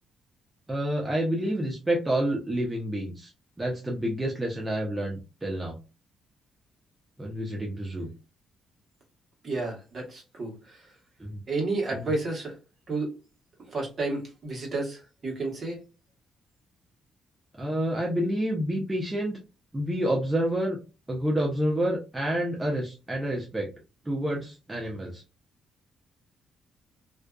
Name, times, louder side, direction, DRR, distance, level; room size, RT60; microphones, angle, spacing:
voice 1, 0.7-3.3 3.6-5.8 7.2-8.1 11.2-11.4 11.9-12.1 17.6-19.4 19.7-20.8 21.1-23.7 24.0-25.2, right 1 dB, 15° right, 0.7 m, -28 dB
voice 2, 9.4-10.8 11.5-12.6 12.9-13.2 13.7-15.8, right 3 dB, 40° right, 1.1 m, -31 dB
2.5 x 2.3 x 2.2 m
cardioid pair, 90°, 0 cm